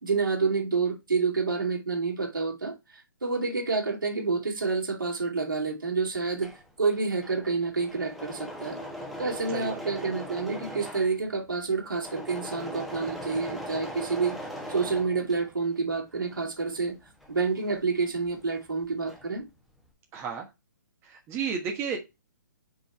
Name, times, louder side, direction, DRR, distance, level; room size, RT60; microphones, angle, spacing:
voice 1, 0.0-2.7 3.2-6.5 6.8-8.8 9.2-14.4 14.7-17.0 17.3-19.4, right 4 dB, 85° right, 2.3 m, -28 dB
Engine / Mechanisms, 6.3-15.8 16.1-18.5 18.7-19.4, equal, ahead, 1.0 m, -40 dB
voice 2, 9.5-9.8 20.1-20.5 21.0-22.0, right 6 dB, 20° right, 1.3 m, -32 dB
5.4 x 4.0 x 4.5 m
hypercardioid pair, 135°, 11 cm